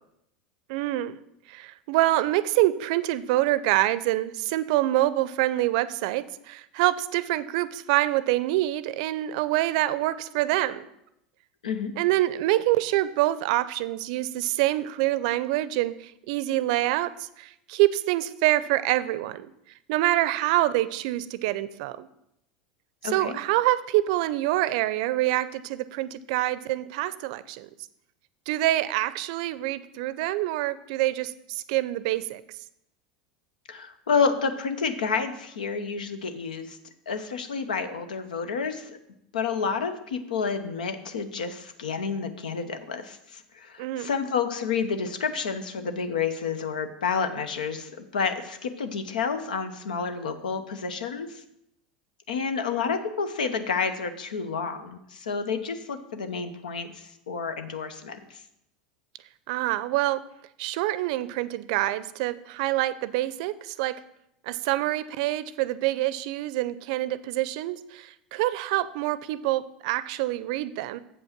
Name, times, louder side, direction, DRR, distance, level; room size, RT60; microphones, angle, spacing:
voice 1, 0.7-1.2 1.5-10.9 12.0-19.5 19.9-22.1 23.0-27.7 28.5-32.4 43.8-44.1 59.5-60.2 60.6-64.0 64.5-71.0, right 16 dB, 65° right, 15 dB, 0.5 m, -26 dB
voice 2, 11.6-11.9 23.0-23.4 33.7-36.8 37.1-39.0 39.3-51.4 52.3-58.4, left 5 dB, 85° left, 9 dB, 0.9 m, -29 dB
7.7 x 5.5 x 5.9 m, 0.79 s
hypercardioid pair, 90°, 4 cm